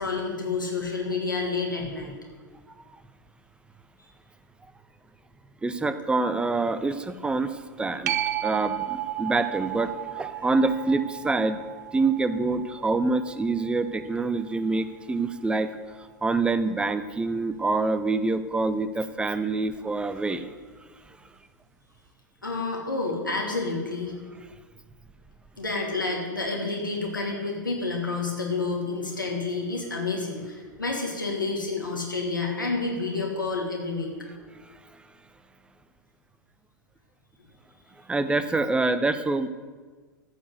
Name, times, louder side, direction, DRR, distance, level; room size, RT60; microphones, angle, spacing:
voice 1, 0.0-2.1 22.4-24.2 25.6-34.1, left 3 dB, 85° left, -1 dB, 2.6 m, -29 dB
voice 2, 5.6-8.1 8.4-11.6 11.9-15.7 16.2-20.5 38.1-39.5, right 3 dB, 10° right, 12 dB, 0.6 m, -26 dB
sound 1, 8.1-15.2 20.8-20.9, right 13 dB, 55° right, 0.7 m, -34 dB
14.0 x 4.7 x 8.0 m, 1.4 s
figure-of-eight pair, 100°, 10 cm